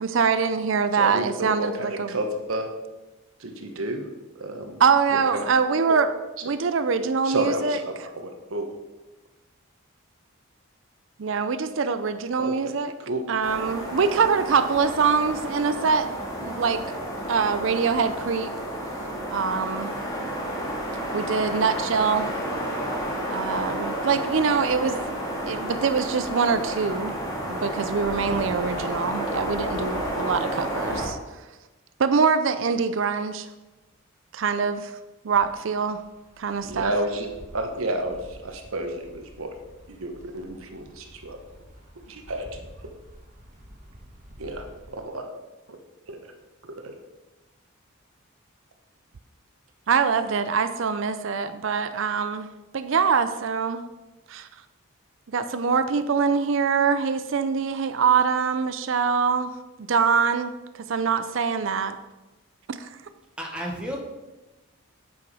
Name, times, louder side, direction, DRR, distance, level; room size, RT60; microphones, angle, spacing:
voice 1, 0.0-2.1 4.8-6.1 6.4-7.8 11.2-12.9 13.3-16.1 16.4-16.8 17.3-18.5 19.3-19.9 21.1-22.3 23.3-25.0 25.5-27.2 27.5-31.2 32.0-33.5 34.3-34.9 35.2-36.0 36.4-36.9 49.9-52.5 52.7-53.8 54.3-54.5 55.3-59.5 59.9-61.9 62.7-62.9, right 5 dB, 60° right, 11 dB, 0.5 m, -24 dB
voice 2, 0.9-2.7 3.4-4.1 4.3-4.8 5.1-5.4 7.2-8.7 12.4-12.7 13.0-13.3 36.6-37.3 37.5-39.5 39.9-41.4 42.1-42.5 44.4-45.3 46.1-46.2 46.6-47.0, right 1 dB, 75° right, 4 dB, 1.1 m, -31 dB
sound 1, 13.4-31.1, right 1 dB, 15° left, 2.0 m, -31 dB
Wind, 35.3-45.1, equal, 35° right, 1.9 m, -49 dB
voice 3, 63.4-64.0, equal, 5° right, -1 dB, 1.3 m, -31 dB
8.5 x 6.3 x 4.8 m, 1.1 s
head